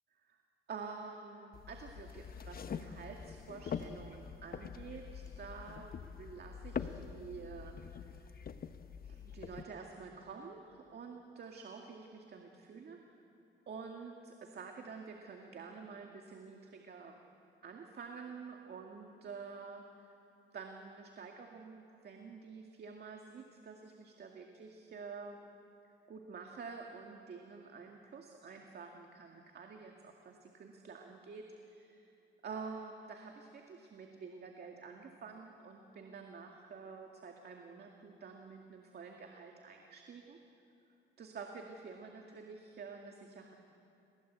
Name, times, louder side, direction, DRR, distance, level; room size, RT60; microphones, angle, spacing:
voice 1, 0.7-8.2 9.0-13.0 13.7-17.2 17.6-20.2 20.5-25.4 25.8-32.1 32.4-40.4 41.2-43.6, right 5 dB, 55° right, 2 dB, 2.2 m, -49 dB
sound 1, 1.5-9.6, left 7 dB, 50° left, 1.2 m, -44 dB
29.5 x 21.5 x 8.2 m, 2.8 s
cardioid pair, 90°, 20 cm